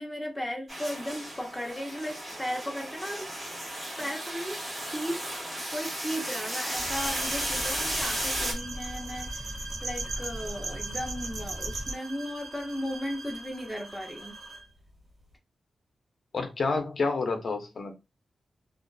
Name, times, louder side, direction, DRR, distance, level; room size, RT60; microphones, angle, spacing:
voice 1, 0.0-3.3 4.0-5.3 5.5-14.4, equal, ahead, 0.6 m, -36 dB
sound 1, 0.7-8.5, right 1 dB, 25° right, 1.3 m, -34 dB
sound 2, 6.7-11.9, right 2 dB, 75° right, 0.6 m, -37 dB
sound 3, 7.0-14.7, right 2 dB, 55° right, 1.3 m, -43 dB
voice 2, 16.3-17.9, left 3 dB, 55° left, 0.6 m, -29 dB
2.4 x 2.3 x 2.2 m
wide cardioid pair, 110°, 0 cm